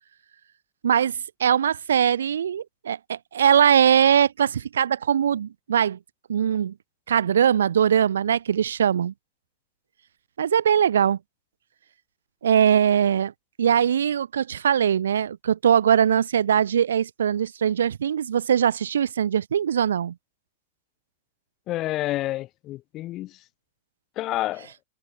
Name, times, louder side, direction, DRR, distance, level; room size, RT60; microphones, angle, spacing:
voice 1, 0.8-6.0 6.3-6.7 7.1-9.1 10.4-11.2 12.4-13.3 13.6-20.1, right 8 dB, 75° right, 2.6 m, -21 dB
voice 2, 21.7-23.3 24.2-24.7, left 16 dB, 40° left, 4.1 m, -29 dB
figure-of-eight pair, 95°, 0 cm